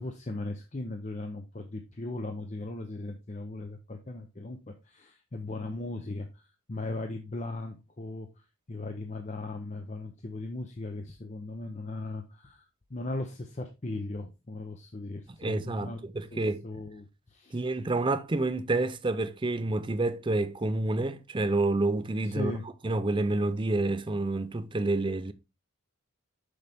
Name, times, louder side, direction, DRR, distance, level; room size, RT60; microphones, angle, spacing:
voice 1, 0.0-16.0 16.3-17.7 22.2-22.6, left 2 dB, 35° left, 0.6 m, -38 dB
voice 2, 15.4-16.6 17.5-22.5 22.8-25.3, right 2 dB, 20° right, 0.5 m, -28 dB
6.5 x 5.5 x 3.4 m
head